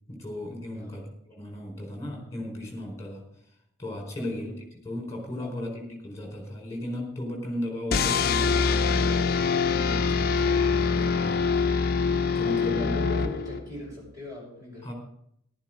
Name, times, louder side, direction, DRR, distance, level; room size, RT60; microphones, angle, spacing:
voice 1, 0.1-3.2 3.8-4.5 4.8-11.7 12.3-13.3 14.8-14.9, left 1 dB, 15° left, 1 dB, 4.2 m, -36 dB
voice 2, 4.2-4.5 5.4-5.8 12.4-14.9, left 2 dB, 15° right, -3 dB, 5.9 m, -39 dB
sound 1, 7.9-13.8, left 5 dB, 45° left, 0.6 m, -24 dB
14.5 x 12.0 x 3.7 m, 0.72 s
head